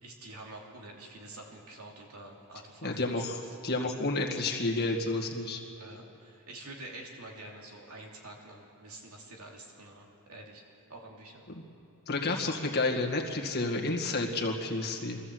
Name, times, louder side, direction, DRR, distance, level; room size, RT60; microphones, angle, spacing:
voice 1, 0.0-3.6 5.8-10.6 10.9-11.4 12.2-12.4, right 2 dB, 80° right, -1 dB, 2.9 m, -47 dB
voice 2, 2.8-5.6 11.5-11.6 12.1-15.2, left 2 dB, 50° left, 0 dB, 2.0 m, -30 dB
22.5 x 14.5 x 7.8 m, 2.7 s
head